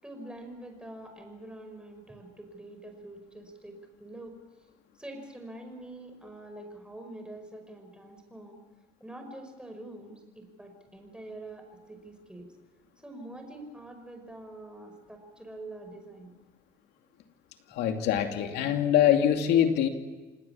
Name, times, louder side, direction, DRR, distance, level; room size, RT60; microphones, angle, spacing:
voice 1, 0.0-4.3 5.0-8.6 9.0-12.5 13.0-16.3, right 1 dB, 5° right, 4 dB, 5.4 m, -45 dB
voice 2, 17.7-19.9, left 10 dB, 85° left, 5 dB, 2.6 m, -24 dB
28.0 x 18.5 x 7.2 m, 1.2 s
cardioid pair, 110°, 17 cm